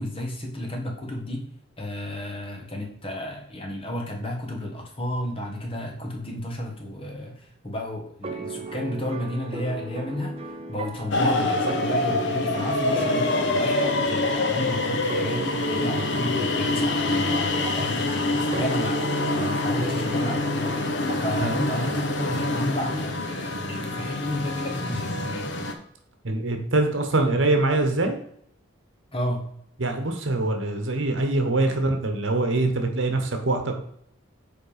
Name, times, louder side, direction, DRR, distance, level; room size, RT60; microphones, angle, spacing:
voice 1, 0.0-1.5 1.8-10.3 10.7-20.9 21.2-25.5 29.1-29.5, left 1 dB, 25° left, 1 dB, 1.5 m, -32 dB
sound 1, 8.2-21.9, right 2 dB, 30° right, 0.7 m, -37 dB
sound 2, 11.1-25.7, left 2 dB, 55° left, 1.0 m, -26 dB
voice 2, 26.2-28.1 29.8-33.8, right 2 dB, 65° right, 5 dB, 1.3 m, -24 dB
7.6 x 4.6 x 5.2 m, 0.70 s
head